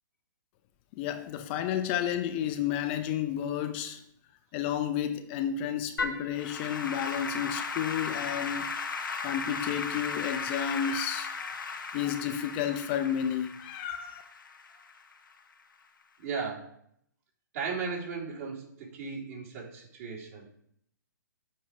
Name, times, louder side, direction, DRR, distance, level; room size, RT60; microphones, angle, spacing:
voice 1, 1.0-4.0 4.5-8.7 9.2-11.6 11.9-14.2, left 9 dB, 30° left, 0.6 m, -31 dB
Applause / Keyboard (musical), 6.0-15.3, left 4 dB, 80° left, 1.3 m, -36 dB
voice 2, 16.2-16.8 17.5-20.5, right 5 dB, 45° right, 3.6 m, -36 dB
7.7 x 5.4 x 4.9 m
hypercardioid pair, 135°, 11 cm